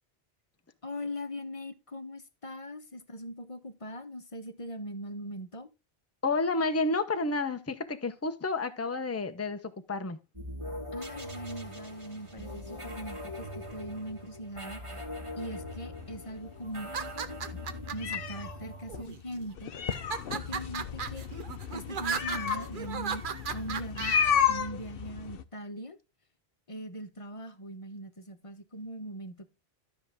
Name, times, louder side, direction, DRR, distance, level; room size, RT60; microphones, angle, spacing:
voice 1, 0.8-5.7 10.9-15.0 15.4-16.9 17.5-17.6 17.9-20.0 20.3-21.3 21.7-23.2 23.5-24.2 24.5-26.0 26.7-29.5, equal, 30° left, 1.1 m, -40 dB
voice 2, 6.2-10.2, left 3 dB, 15° left, 0.8 m, -30 dB
sound 1, 10.3-19.0, left 1 dB, 30° right, 2.1 m, -42 dB
sound 2, 15.9-25.4, left 8 dB, 60° left, 0.9 m, -33 dB
sound 3, 16.8-18.2 18.9-19.4 19.9-24.3, right 6 dB, 55° right, 1.0 m, -36 dB
12.5 x 6.2 x 3.6 m
omnidirectional pair, 1.1 m